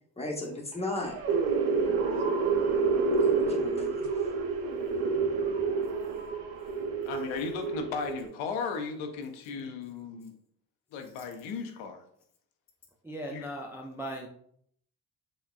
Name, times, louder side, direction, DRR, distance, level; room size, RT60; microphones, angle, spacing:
voice 1, 0.2-1.1 3.2-4.2, left 2 dB, 15° left, -1 dB, 0.9 m, -36 dB
sound 1, 1.0-8.3, right 4 dB, 75° right, 0.7 m, -28 dB
voice 2, 7.1-10.3 10.9-12.0 13.3-13.5, left 5 dB, 85° left, 5 dB, 0.6 m, -36 dB
voice 3, 13.0-14.3, right 1 dB, 5° right, 0 dB, 0.3 m, -38 dB
3.6 x 2.1 x 2.3 m, 0.66 s
supercardioid pair, 50°, 46 cm